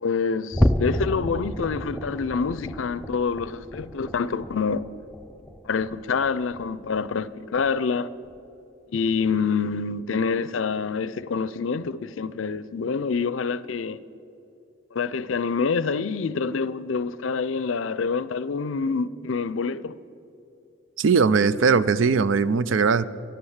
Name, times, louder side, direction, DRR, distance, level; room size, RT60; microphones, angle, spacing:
voice 1, 0.0-4.8 5.6-8.1 8.9-14.0 14.9-19.9, left 5 dB, 75° left, 0.5 m, -26 dB
sound 1, 0.5-7.2 7.5-7.8 8.2-8.4 8.9-9.1, left 1 dB, 5° left, 0.4 m, -30 dB
voice 2, 21.0-23.1, right 5 dB, 70° right, 0.5 m, -20 dB
13.0 x 11.5 x 7.2 m
head